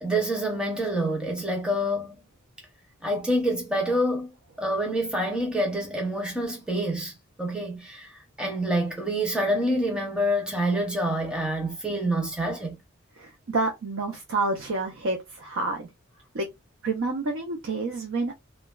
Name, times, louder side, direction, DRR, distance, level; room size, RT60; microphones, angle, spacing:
voice 1, 0.0-2.2 3.0-7.1 7.4-12.8, right 1 dB, 5° right, 0.6 m, -27 dB
voice 2, 13.2-15.9 16.3-16.5 16.8-18.3, right 3 dB, 75° right, 0.5 m, -28 dB
3.0 x 2.2 x 2.2 m
head